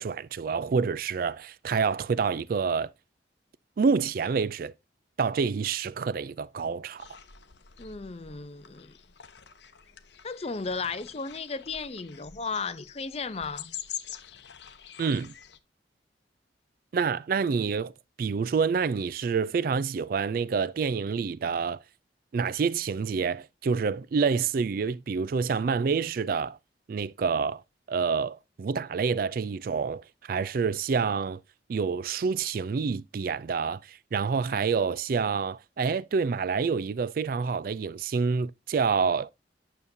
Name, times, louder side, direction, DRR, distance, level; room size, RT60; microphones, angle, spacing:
voice 1, 0.0-2.9 3.8-4.7 5.2-7.1 15.0-15.3 16.9-17.9 18.2-21.8 22.3-26.6 26.9-27.6 27.9-31.4 31.7-39.3, right 5 dB, 50° right, 0.3 m, -27 dB
sound 1, 7.0-15.6, left 10 dB, 75° left, 0.8 m, -45 dB
voice 2, 7.8-8.9 10.2-13.7, left 4 dB, 35° left, 0.6 m, -35 dB
9.3 x 6.8 x 2.7 m
head